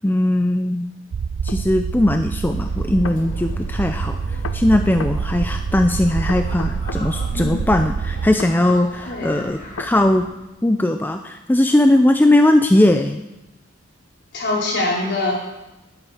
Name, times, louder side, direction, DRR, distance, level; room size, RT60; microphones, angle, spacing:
voice 1, 0.0-0.9 1.4-10.3 10.6-13.2, left 1 dB, 10° left, 6 dB, 0.4 m, -18 dB
sound 1, 1.1-8.3, right 6 dB, 80° right, 0.4 m, -26 dB
sound 2, 1.5-1.6 2.8-3.2 4.4-5.2 6.3-7.0 8.4-8.9 9.8-9.9, left 4 dB, 85° left, 0.8 m, -33 dB
sound 3, 2.5-10.3, equal, 40° left, 4.9 m, -35 dB
voice 2, 7.3-7.6 9.1-9.5 14.3-15.3, left 2 dB, 55° left, -3 dB, 4.2 m, -24 dB
20.0 x 8.2 x 4.9 m, 1.0 s
head